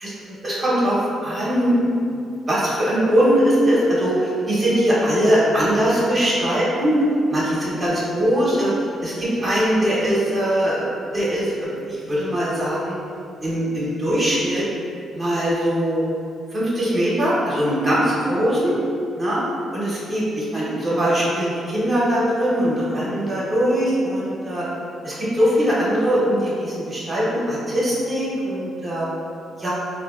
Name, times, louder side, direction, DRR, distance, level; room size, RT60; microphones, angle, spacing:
voice 1, 0.0-1.7 2.5-7.0 7.3-13.0 13.4-14.6 15.1-16.0 16.5-18.8 19.2-19.4 19.7-24.6 25.0-29.1 29.6-29.7, equal, 30° right, -8 dB, 0.8 m, -21 dB
3.4 x 2.5 x 2.3 m, 2.5 s
cardioid pair, 90°, 0 cm